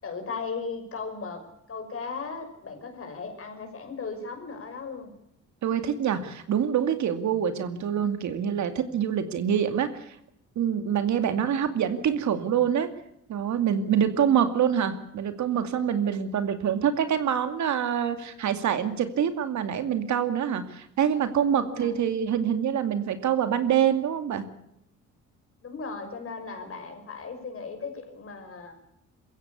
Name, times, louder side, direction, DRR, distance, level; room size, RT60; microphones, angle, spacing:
voice 1, 0.0-1.4 1.7-5.1 21.6-22.0 25.6-28.8, left 4 dB, 45° left, 6 dB, 5.9 m, -37 dB
voice 2, 5.6-10.2 10.6-12.9 13.3-24.5, right 8 dB, 70° right, 9 dB, 2.4 m, -25 dB
21.5 x 16.0 x 8.4 m, 0.78 s
cardioid pair, 90°, 30 cm